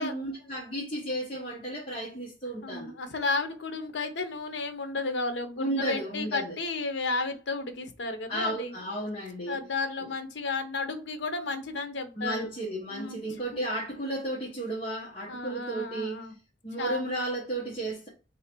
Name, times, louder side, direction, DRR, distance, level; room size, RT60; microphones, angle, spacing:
voice 1, 0.0-2.9 5.6-6.5 8.3-9.6 10.0-10.1 12.2-16.2 16.6-18.1, right 1 dB, 30° left, 0.9 m, -33 dB
voice 2, 2.6-8.7 9.5-12.5 12.9-13.2 13.5-13.6 15.3-16.3 16.8-17.0, left 3 dB, 70° left, 0.7 m, -33 dB
3.3 x 2.8 x 4.3 m
head